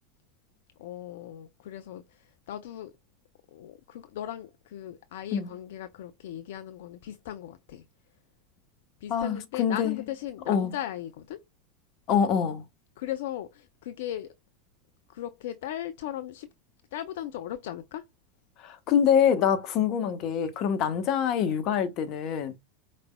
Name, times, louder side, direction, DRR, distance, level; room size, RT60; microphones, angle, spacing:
voice 1, 0.8-2.9 3.5-7.8 9.0-11.4 13.0-14.3 15.1-16.5 16.9-18.0, left 12 dB, 65° left, 0.5 m, -38 dB
voice 2, 9.1-10.0 10.5-10.7 12.1-12.6 18.6-22.5, left 8 dB, 50° left, 1.1 m, -25 dB
5.1 x 4.2 x 2.2 m
hypercardioid pair, 80°, 0 cm